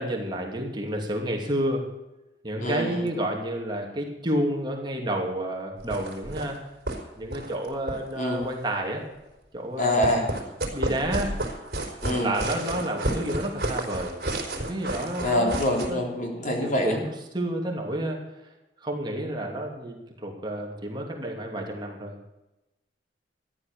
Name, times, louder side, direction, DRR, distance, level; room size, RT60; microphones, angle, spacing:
voice 1, 0.0-1.9 2.4-6.6 7.2-9.0 9.5-10.2 10.7-11.4 12.2-14.2 14.7-15.5 15.9-16.0 16.4-17.0 17.3-18.2 18.8-22.1, right 1 dB, 25° right, 1 dB, 2.7 m, -30 dB
voice 2, 2.6-3.0 8.2-8.5 9.8-10.3 12.0-12.3 15.2-17.0, left 1 dB, 45° left, 1 dB, 3.6 m, -25 dB
sound 1, 5.8-6.6 6.9-7.0 7.2-8.6 9.8-15.9, right 1 dB, 60° right, 4.1 m, -31 dB
14.0 x 11.5 x 6.7 m, 0.99 s
head